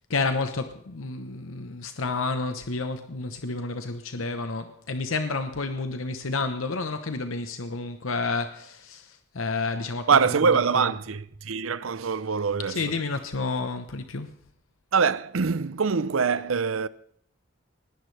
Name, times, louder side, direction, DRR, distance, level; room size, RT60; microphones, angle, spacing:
voice 1, 0.1-10.1 12.7-14.3, left 3 dB, 90° left, 1.0 m, -30 dB
voice 2, 10.1-13.0 14.9-16.9, right 5 dB, 90° right, 0.6 m, -24 dB
20.0 x 17.0 x 3.3 m
head